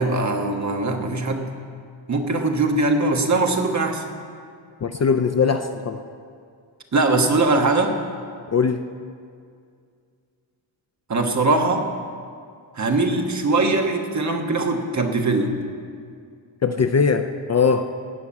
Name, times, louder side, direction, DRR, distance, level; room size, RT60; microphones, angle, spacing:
voice 1, 0.0-1.5 2.1-4.0 6.9-7.9 11.1-11.8 12.8-15.5, right 2 dB, 35° right, 3 dB, 1.3 m, -21 dB
voice 2, 4.8-6.0 8.5-8.8 16.6-17.2 17.5-17.9, left 5 dB, 35° left, 7 dB, 0.5 m, -20 dB
17.5 x 5.9 x 8.6 m, 2.3 s
wide cardioid pair, 160°, 47 cm